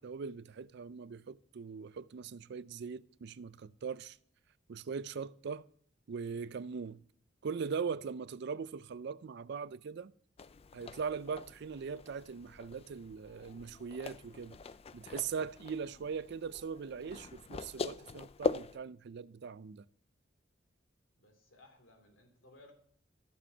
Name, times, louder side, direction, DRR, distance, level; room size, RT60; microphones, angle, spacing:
voice 1, 0.0-4.2 4.7-5.6 6.1-7.0 7.4-10.1 10.7-14.6 14.9-19.8, right 6 dB, 60° right, 0.4 m, -40 dB
sound 1, 10.4-18.8, left 4 dB, 30° left, 0.4 m, -42 dB
voice 2, 21.2-22.7, left 2 dB, 85° left, 2.7 m, -60 dB
14.5 x 7.3 x 2.8 m
head